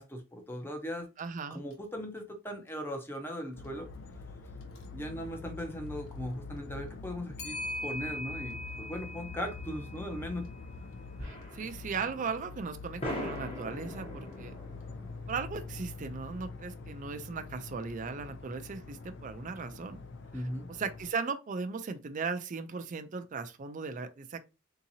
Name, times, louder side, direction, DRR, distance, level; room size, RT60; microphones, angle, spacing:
voice 1, 0.0-1.1 1.5-3.9 4.9-10.5 20.3-20.7, equal, 10° left, 0.6 m, -38 dB
Clock, 1.2-1.3 1.7-1.8 4.6-4.8 7.4-11.6, left 1 dB, 75° left, 0.8 m, -42 dB
voice 2, 1.2-1.6 11.2-14.6 15.3-20.0 20.3-20.4 20.7-24.4, right 5 dB, 35° right, 0.4 m, -37 dB
sound 1, 3.5-21.1, left 4 dB, 55° left, 0.4 m, -45 dB
sound 2, 11.2-11.9 12.3-12.4 13.0-16.1, equal, 25° left, 0.9 m, -41 dB
3.7 x 2.8 x 2.7 m
head